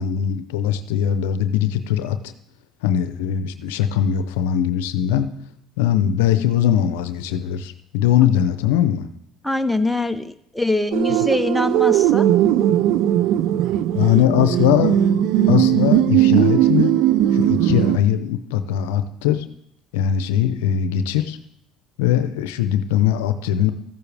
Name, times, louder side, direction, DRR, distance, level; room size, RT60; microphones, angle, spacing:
voice 1, 0.0-2.2 2.8-5.3 5.8-9.1 11.2-11.3 13.9-15.0 15.5-16.9 17.3-19.4 19.9-21.4 22.0-23.7, left 10 dB, 85° left, 11 dB, 0.6 m, -20 dB
voice 2, 9.4-12.3, left 2 dB, ahead, 8 dB, 0.8 m, -23 dB
sound 1, 10.9-18.0, right 12 dB, 70° right, 0.4 m, -18 dB
14.5 x 6.9 x 3.4 m, 0.72 s
supercardioid pair, 75°, 0 cm